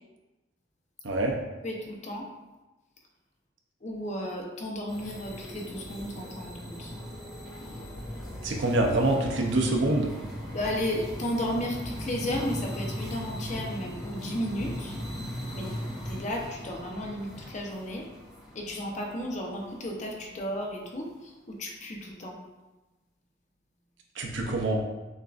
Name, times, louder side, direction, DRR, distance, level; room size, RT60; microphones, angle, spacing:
voice 1, 1.6-2.2 3.8-6.9 10.5-14.9 15.5-15.7 16.1-18.0 18.5-21.1 21.6-22.4, left 1 dB, 40° left, 0 dB, 0.7 m, -33 dB
sound 1, 4.9-20.2, equal, ahead, 1.3 m, -38 dB
voice 2, 8.4-10.1 24.2-24.8, right 2 dB, 85° right, 1 dB, 0.7 m, -25 dB
6.3 x 2.5 x 2.5 m, 1.1 s
head